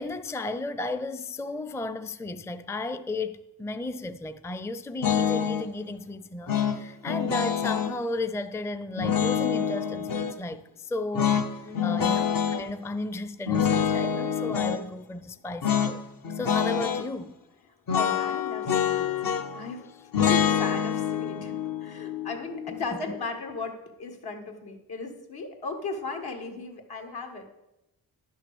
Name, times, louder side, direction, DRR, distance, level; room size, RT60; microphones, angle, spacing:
voice 1, 0.0-16.0 16.3-17.3 22.7-22.8 23.1-23.2, left 2 dB, 5° left, 0.5 m, -34 dB
sound 1, 5.0-5.7 6.5-8.0 9.0-10.4 11.1-12.6 13.5-14.8 15.6-16.0 16.2-17.1 17.9-19.6 20.1-23.2, left 8 dB, 60° left, 0.9 m, -26 dB
voice 2, 11.6-12.0 17.9-19.8 20.2-27.4, left 3 dB, 75° left, 1.9 m, -36 dB
10.5 x 6.2 x 6.9 m
cardioid pair, 65°, 38 cm